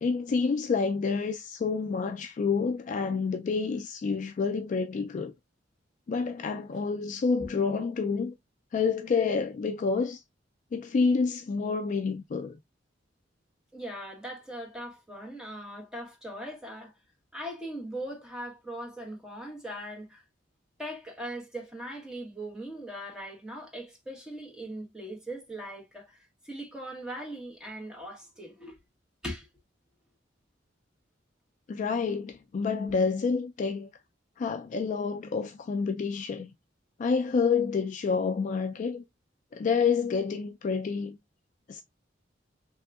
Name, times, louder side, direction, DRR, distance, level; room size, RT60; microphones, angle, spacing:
voice 1, 0.0-5.3 6.1-8.3 8.7-10.2 10.7-12.5 31.7-33.9 34.4-36.5 37.0-39.0 39.5-41.2 41.7-41.8, left 5 dB, 45° left, 0.3 m, -28 dB
voice 2, 13.7-16.9 17.3-20.2 20.8-26.2 26.4-28.8 29.2-29.5, right 1 dB, 5° right, 1.0 m, -40 dB
3.4 x 2.8 x 2.3 m
head